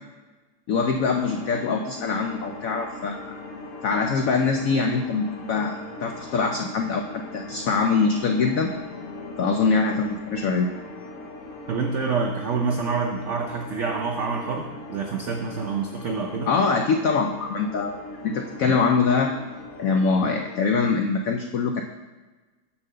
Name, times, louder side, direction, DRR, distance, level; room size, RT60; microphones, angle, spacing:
voice 1, 0.7-3.3 3.8-8.7 9.4-10.7 16.5-18.0 18.2-19.3 19.8-21.8, left 4 dB, 85° left, 4 dB, 0.7 m, -23 dB
sound 1, 1.0-20.6, left 2 dB, 55° left, 0.9 m, -40 dB
voice 2, 11.7-16.5, right 4 dB, 80° right, 2 dB, 0.6 m, -27 dB
7.2 x 4.5 x 6.6 m, 1.2 s
omnidirectional pair, 2.1 m